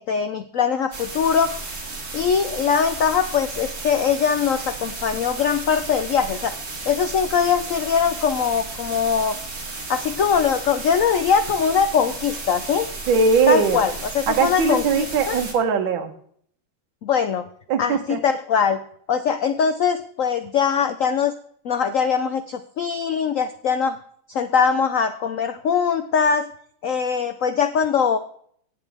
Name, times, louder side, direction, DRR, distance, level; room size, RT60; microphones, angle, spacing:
voice 1, 0.0-1.5 2.1-6.5 6.9-9.4 9.9-12.9 13.5-15.4 17.0-17.4 17.8-18.8 19.1-21.3 21.6-24.0 24.3-26.5 26.8-28.2, left 6 dB, 85° left, 10 dB, 0.7 m, -21 dB
sound 1, 0.9-15.5, right 3 dB, 30° right, 2.5 m, -34 dB
voice 2, 13.1-13.8 14.3-16.1 17.7-18.2, right 5 dB, 70° right, 5 dB, 1.9 m, -20 dB
17.0 x 8.3 x 3.5 m, 0.62 s
omnidirectional pair, 2.2 m